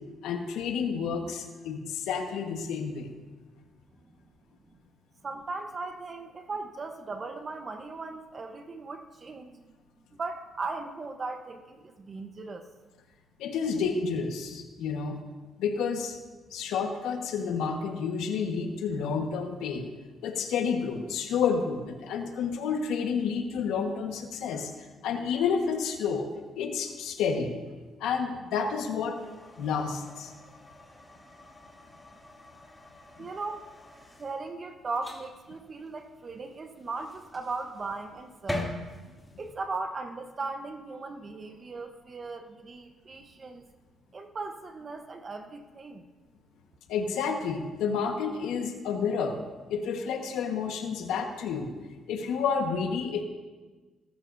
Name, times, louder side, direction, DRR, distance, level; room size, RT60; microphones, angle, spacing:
voice 1, 0.2-3.1 13.4-15.2 15.6-16.2 16.5-19.9 20.2-24.7 25.0-27.5 28.0-30.3 46.9-49.4 49.7-51.7 52.1-53.2, left 6 dB, 90° left, 4 dB, 1.4 m, -30 dB
voice 2, 5.2-9.8 10.1-12.6 33.2-33.7 34.2-38.8 39.4-43.6 44.1-46.0, right 3 dB, 40° right, 6 dB, 1.0 m, -38 dB
sound 1, 29.1-39.5, left 1 dB, 10° left, 2.6 m, -43 dB
19.0 x 13.0 x 2.7 m, 1.3 s
cardioid pair, 90°, 0 cm